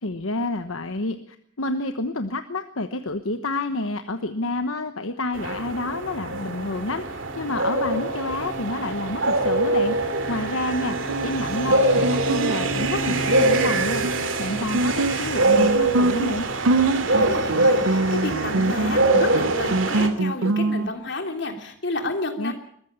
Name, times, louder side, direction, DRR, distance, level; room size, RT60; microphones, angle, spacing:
voice 1, 0.0-11.0 11.2-16.5 22.4-22.5, left 2 dB, 75° left, 8 dB, 1.1 m, -29 dB
sound 1, 5.3-20.1, right 2 dB, 65° right, 2.6 m, -24 dB
Guitar, 10.8-20.9, right 2 dB, 85° right, 0.9 m, -25 dB
voice 2, 17.1-22.5, left 2 dB, 55° left, 4 dB, 3.3 m, -30 dB
21.5 x 14.5 x 8.7 m, 0.67 s
head